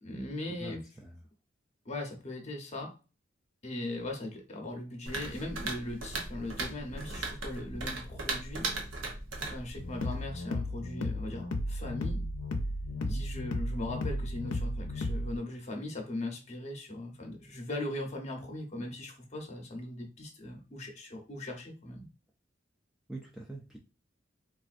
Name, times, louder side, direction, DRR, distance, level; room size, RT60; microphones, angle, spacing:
voice 1, 0.0-0.8 1.8-2.9 3.6-8.7 9.5-12.3 13.0-22.1, left 1 dB, 35° left, 2 dB, 0.8 m, -39 dB
sound 1, 5.1-10.2, right 3 dB, 75° right, 0.7 m, -38 dB
sound 2, 9.8-15.4, left 1 dB, 70° left, 0.5 m, -34 dB
voice 2, 23.1-23.8, right 2 dB, 5° right, -2 dB, 0.4 m, -43 dB
3.7 x 2.4 x 2.5 m, 0.33 s
head